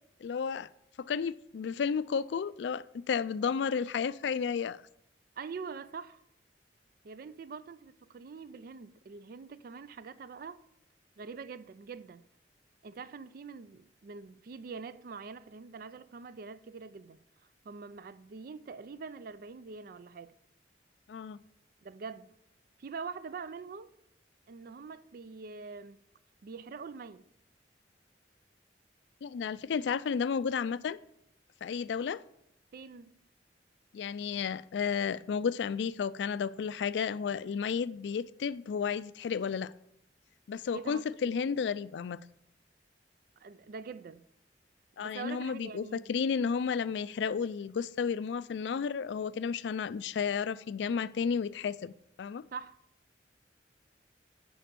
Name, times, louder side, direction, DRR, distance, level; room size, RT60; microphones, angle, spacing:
voice 1, 0.2-0.7 1.0-4.8 21.1-21.4 29.2-31.0 31.6-32.2 33.9-39.7 40.5-42.2 45.0-52.4, left 6 dB, 80° left, 0.3 m, -32 dB
voice 2, 5.4-6.2 7.0-10.6 11.2-12.2 12.8-17.2 17.6-20.3 21.8-22.3 22.8-23.9 24.5-26.0 26.4-27.2 32.7-33.1 40.7-41.0 41.3-41.6 43.4-44.2 45.0-46.1 52.5-52.8, right 5 dB, 55° right, 0.4 m, -44 dB
8.7 x 5.0 x 5.2 m
head